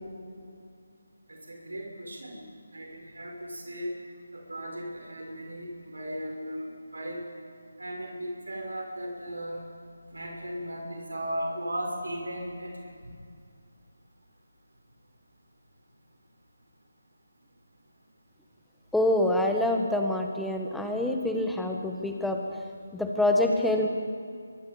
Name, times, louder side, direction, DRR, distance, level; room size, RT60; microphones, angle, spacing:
voice 1, 1.3-2.5 2.7-3.9 4.3-7.3 7.8-9.6 10.1-12.9, equal, 80° right, 0 dB, 5.4 m, -36 dB
voice 2, 18.9-22.4 22.9-23.9, left 1 dB, ahead, 2 dB, 1.6 m, -26 dB
24.0 x 23.0 x 5.2 m, 2.3 s
figure-of-eight pair, 160°, 0 cm